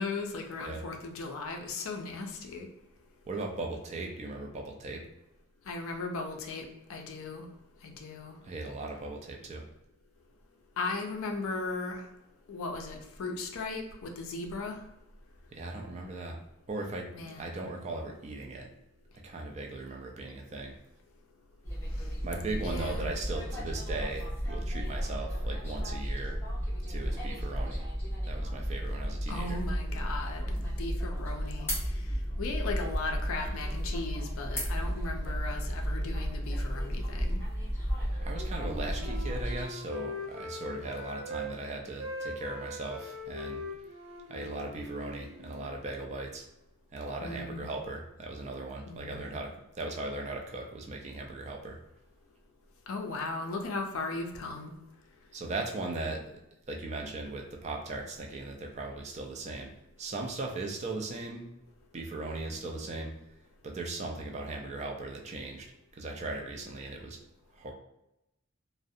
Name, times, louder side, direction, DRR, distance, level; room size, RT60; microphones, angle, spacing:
voice 1, 0.0-2.7 5.7-7.5 7.8-8.3 10.8-12.0 12.5-14.8 17.1-17.5 22.6-23.1 29.3-31.7 32.4-37.4 47.2-47.7 48.9-49.2 52.9-54.7, left 3 dB, 60° left, 3 dB, 0.4 m, -37 dB
voice 2, 3.3-5.0 8.4-9.7 15.5-16.4 16.7-18.7 19.2-20.8 22.2-26.4 26.9-27.8 28.3-29.6 38.2-43.6 44.3-46.5 46.9-51.8 55.3-56.3 56.7-59.7 60.0-61.5 61.9-63.1 63.6-65.7 65.9-67.2 67.5-67.7, right 2 dB, 30° right, 1 dB, 0.3 m, -38 dB
sound 1, 21.6-39.7, equal, 10° left, 0.6 m, -33 dB
Wind instrument woodwind instrument, 38.1-41.5 41.8-45.8, left 1 dB, 60° right, 0.7 m, -41 dB
2.4 x 2.0 x 2.6 m, 0.89 s
head